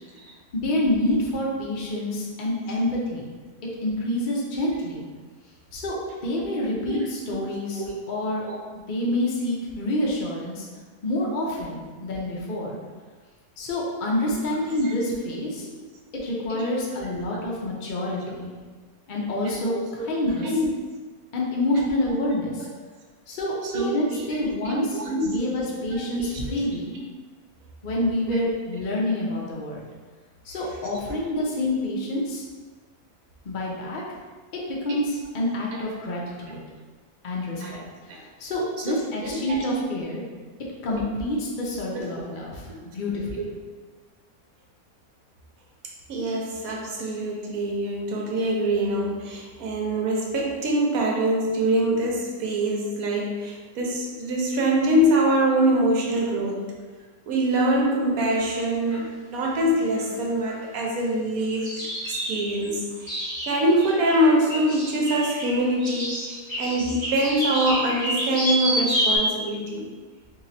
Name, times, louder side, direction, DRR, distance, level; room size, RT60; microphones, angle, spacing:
voice 1, 0.5-3.3 3.8-5.0 5.7-6.0 6.2-8.5 8.9-10.7 11.0-12.8 13.6-15.7 16.2-18.5 19.1-20.5 21.3-22.7 23.3-25.0 25.2-26.9 27.8-29.9 30.4-32.4 33.4-34.0 34.7-36.6 37.2-40.2 40.8-42.7 42.9-43.5, left 1 dB, 50° left, -4 dB, 0.6 m, -27 dB
voice 2, 19.4-20.1 20.4-20.7 23.6-25.3 25.9-26.6 28.3-28.4 31.1-31.2 37.6-37.7 39.2-39.6 42.2-42.3 46.1-56.7 57.3-69.9, right 1 dB, 75° right, -1 dB, 1.1 m, -24 dB
sound 1, 58.5-58.6 58.9-59.0 59.4-59.6 59.9-60.1 60.4-60.6 61.6-69.2, equal, 30° left, 1.5 m, -29 dB
3.0 x 2.8 x 4.0 m, 1.4 s
omnidirectional pair, 1.6 m